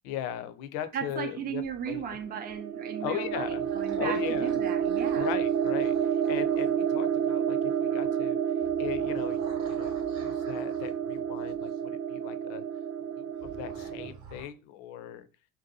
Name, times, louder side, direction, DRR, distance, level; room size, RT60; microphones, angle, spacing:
voice 1, 0.0-2.0 3.0-3.7 4.0-4.6 5.1-8.4 8.8-9.4 9.7-12.6 13.0-15.3, left 11 dB, 65° left, 0.5 m, -38 dB
voice 2, 0.9-5.3, right 8 dB, 25° right, 0.5 m, -36 dB
sound 1, 1.6-2.6 3.1-7.3 8.6-11.8 13.4-14.4, right 3 dB, 90° right, 1.0 m, -50 dB
sound 2, 2.2-14.1, right 8 dB, 70° right, 0.7 m, -29 dB
2.6 x 2.2 x 2.6 m
hypercardioid pair, 65°, 38 cm